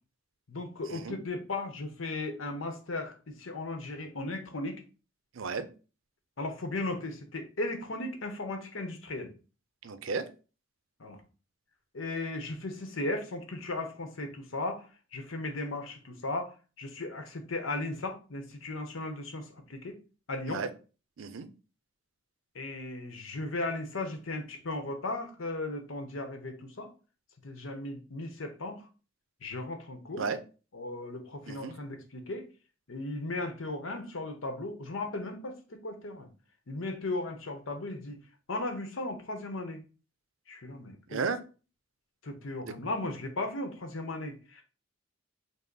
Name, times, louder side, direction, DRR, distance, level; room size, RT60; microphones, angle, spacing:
voice 1, 0.5-4.8 6.4-9.3 11.0-11.2 11.9-14.8 15.1-19.9 20.3-20.6 22.5-26.9 27.4-28.9 29.4-30.3 30.7-32.5 32.9-36.3 36.7-38.2 38.5-39.8 40.5-41.2 42.2-44.6, left 2 dB, 85° left, 0.9 m, -36 dB
voice 2, 5.4-5.7 9.8-10.2 20.5-20.7 21.2-21.5 30.2-30.4 31.5-31.7 41.1-41.4 42.6-42.7, right 4 dB, 75° right, 0.5 m, -33 dB
5.5 x 2.1 x 3.9 m
head